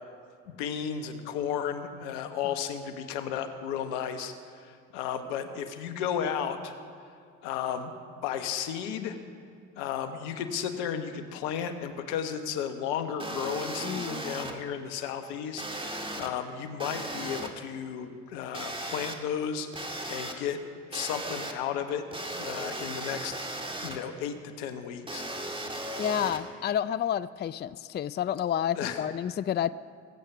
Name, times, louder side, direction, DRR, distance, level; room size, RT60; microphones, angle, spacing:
voice 1, 0.5-6.7 7.4-9.2 9.8-20.6 20.9-22.1 22.4-23.3 23.8-25.2 28.8-29.0, left 8 dB, 80° left, 8 dB, 1.2 m, -34 dB
sound 1, 13.2-14.5 15.6-16.3 16.8-17.5 18.5-19.1 19.7-20.3 20.9-21.5 22.1-24.0 25.1-26.4, right 1 dB, 15° right, 2.0 m, -36 dB
voice 2, 13.8-14.2 26.0-29.7, left 9 dB, 30° left, 16 dB, 0.4 m, -30 dB
21.0 x 8.2 x 5.9 m, 2.3 s
hypercardioid pair, 60°, 36 cm